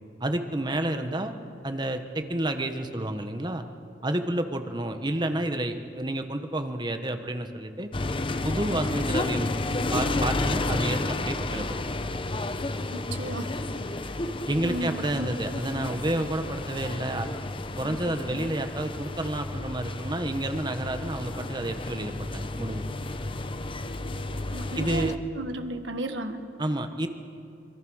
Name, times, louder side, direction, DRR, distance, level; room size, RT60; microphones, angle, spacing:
voice 1, 0.2-1.3 1.6-3.6 4.0-7.9 8.4-9.5 9.9-11.8 14.5-17.3 17.8-23.0 24.7-25.1 26.6-27.1, right 1 dB, 25° right, 7 dB, 1.2 m, -30 dB
sound 1, 7.9-25.2, left 2 dB, 30° left, 0.8 m, -31 dB
voice 2, 12.9-13.5 14.6-15.3 24.3-25.1 25.4-26.4, right 2 dB, 80° right, 6 dB, 1.7 m, -33 dB
26.0 x 23.5 x 6.4 m, 2.5 s
head